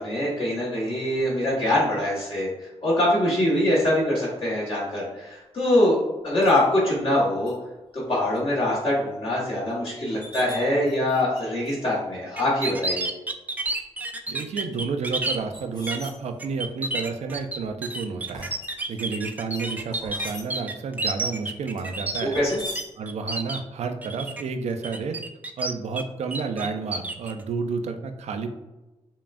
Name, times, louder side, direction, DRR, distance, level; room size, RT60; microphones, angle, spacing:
voice 1, 0.0-2.5 2.8-7.5 7.9-13.1 22.2-22.6, left 1 dB, 50° left, -7 dB, 1.4 m, -23 dB
sound 1, 6.4-6.6 7.5-7.6 8.0-8.4 8.8-8.9 9.7-9.8 10.0-11.4 11.6-12.0 12.7-12.8 13.6-14.0 14.7-16.7 17.3-17.7 18.3-19.1 19.5-20.4 21.8-22.8, left 1 dB, 35° left, 1.0 m, -41 dB
sound 2, 12.4-15.4 15.9-16.1 16.4-22.8 23.1-23.6 24.0-24.4 24.8-26.0 26.3-27.3, right 2 dB, 15° right, 0.4 m, -30 dB
voice 2, 14.3-18.5 18.9-22.4 23.0-25.2 25.6-28.5, right 5 dB, 75° right, 7 dB, 0.4 m, -30 dB
5.4 x 2.3 x 2.5 m, 1.0 s
cardioid pair, 95°, 11 cm